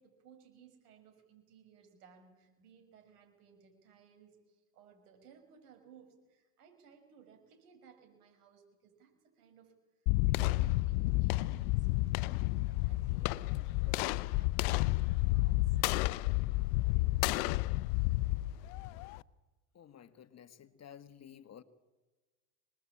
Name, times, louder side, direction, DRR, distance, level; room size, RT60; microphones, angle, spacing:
voice 1, 0.0-9.7 10.2-11.9 12.3-14.5 14.9-15.8 16.8-17.3, right 7 dB, 85° right, 5 dB, 6.9 m, -61 dB
sound 1, 10.1-19.2, left 19 dB, 70° left, 0.9 m, -31 dB
voice 2, 19.7-21.6, left 9 dB, 35° left, 12 dB, 1.7 m, -53 dB
26.0 x 20.5 x 8.8 m, 1.2 s
supercardioid pair, 95°, 45 cm